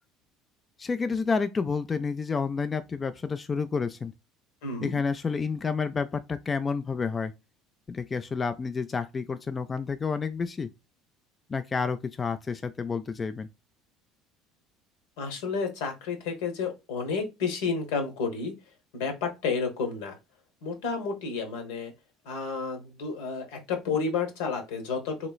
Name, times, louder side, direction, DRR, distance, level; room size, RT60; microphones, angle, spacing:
voice 1, 0.8-4.1 4.8-7.3 7.9-10.7 11.5-13.5, left 5 dB, 25° left, 0.3 m, -29 dB
voice 2, 4.6-5.0 15.2-18.5 18.9-20.2 20.6-21.9 22.2-25.3, left 5 dB, 85° left, 1.1 m, -31 dB
3.0 x 3.0 x 2.3 m
supercardioid pair, 95°, 0 cm